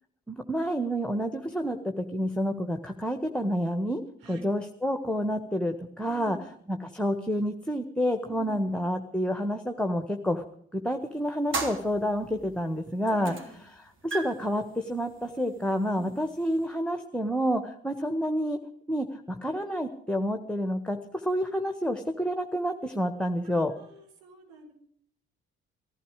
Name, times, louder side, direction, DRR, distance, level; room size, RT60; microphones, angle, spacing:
voice 1, 0.3-4.0 4.3-6.4 6.7-10.4 10.7-13.3 14.0-18.6 18.9-21.0 21.2-23.7, equal, 5° left, 5 dB, 1.6 m, -29 dB
voice 2, 6.0-6.5 8.3-8.7 13.2-13.6 15.9-16.1 23.7-24.7, right 4 dB, 70° right, 2 dB, 4.5 m, -47 dB
sound 1, 11.5-12.5 13.1-13.6 13.9-16.6, right 3 dB, 40° right, 3.5 m, -37 dB
18.5 x 15.5 x 5.0 m, 0.63 s
figure-of-eight pair, 45°, 30 cm